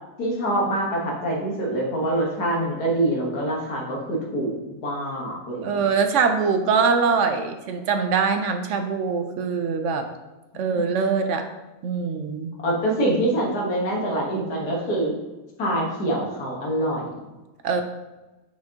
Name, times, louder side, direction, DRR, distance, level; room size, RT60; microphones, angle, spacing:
voice 1, 0.2-4.5 4.8-5.8 10.7-10.9 12.6-15.1 15.6-17.0, right 1 dB, 90° left, -2 dB, 1.9 m, -25 dB
voice 2, 5.6-10.1 10.6-11.4 11.8-12.5 17.6-17.8, right 5 dB, 65° right, 7 dB, 0.8 m, -23 dB
6.4 x 6.0 x 2.8 m, 1.1 s
omnidirectional pair, 1.6 m